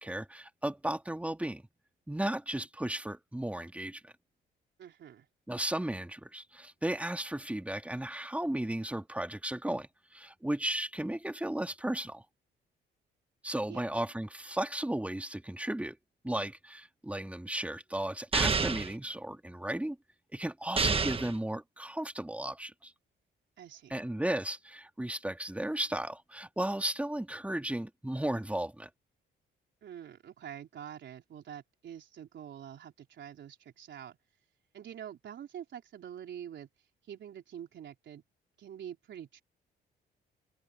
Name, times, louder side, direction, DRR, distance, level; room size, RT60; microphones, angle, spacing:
voice 1, 0.0-1.6 2.1-4.1 5.5-12.2 13.4-15.9 16.2-20.0 20.3-22.9 23.9-28.9, right 1 dB, 5° right, 3.0 m, -35 dB
voice 2, 4.8-5.3 13.7-13.8 23.6-23.9 29.8-34.2 34.7-38.2 38.6-39.4, right 9 dB, 65° right, 3.9 m, -46 dB
sound 1, 18.3-18.9 20.8-21.4, right 5 dB, 30° right, 1.3 m, -28 dB
open air
cardioid pair, 90°, 20 cm